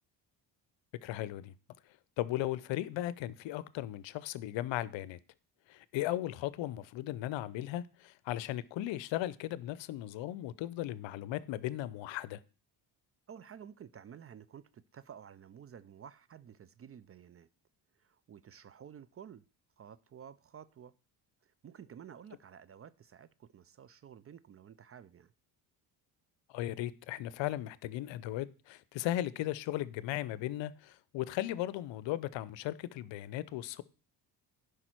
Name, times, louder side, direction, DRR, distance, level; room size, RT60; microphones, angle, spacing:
voice 1, 1.0-1.5 2.2-5.2 5.7-12.4 26.5-33.8, left 14 dB, 75° left, 0.7 m, -37 dB
voice 2, 13.3-17.5 18.0-19.4 19.8-20.9 21.4-25.3, right 8 dB, 30° right, 0.4 m, -52 dB
11.0 x 5.0 x 4.5 m
supercardioid pair, 70°, 46 cm